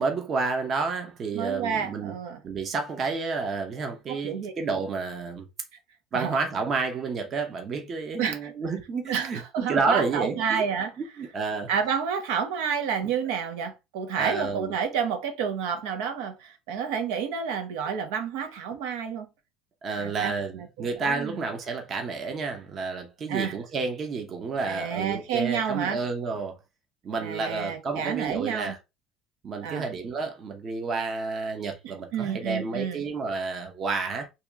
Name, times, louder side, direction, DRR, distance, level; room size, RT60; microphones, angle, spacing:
voice 1, 0.0-2.1 2.4-5.5 6.1-10.6 11.0-11.7 14.2-14.7 19.8-26.6 27.0-28.8 29.4-34.3, right 4 dB, 35° right, 0.8 m, -30 dB
voice 2, 1.3-2.4 4.1-4.5 6.1-6.4 8.2-8.5 9.1-10.9 11.7-19.3 20.0-21.4 23.3-23.6 24.7-26.0 27.2-28.7 29.6-29.9 31.8-33.0, right 7 dB, 85° right, 0.9 m, -30 dB
3.0 x 2.9 x 3.5 m
cardioid pair, 150°, 0 cm